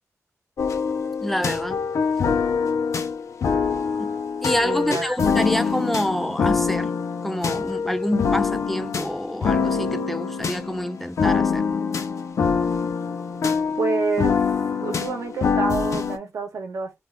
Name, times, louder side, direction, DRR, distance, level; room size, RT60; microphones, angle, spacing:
sound 1, 0.6-16.2, left 5 dB, 70° left, 0.5 m, -24 dB
voice 1, 1.2-1.8 4.0-4.1 4.4-6.9 7.2-11.6, equal, 5° left, 0.4 m, -27 dB
voice 2, 4.6-5.1 13.8-14.4 14.7-17.0, right 4 dB, 80° right, 0.8 m, -28 dB
2.5 x 2.4 x 3.4 m
wide cardioid pair, 120°, 5 cm